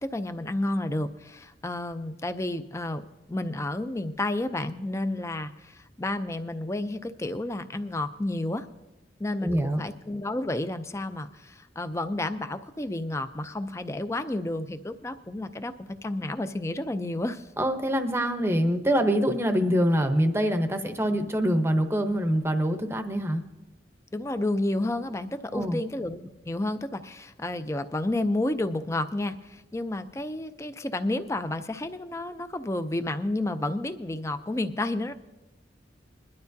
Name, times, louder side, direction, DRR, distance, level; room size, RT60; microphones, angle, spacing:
voice 1, 0.0-8.7 9.2-17.5 24.1-35.1, left 1 dB, 15° left, 10 dB, 0.4 m, -31 dB
voice 2, 9.4-9.8 17.6-23.4 25.5-25.8, equal, 15° right, 6 dB, 0.8 m, -25 dB
22.0 x 12.0 x 2.7 m, 1.0 s
head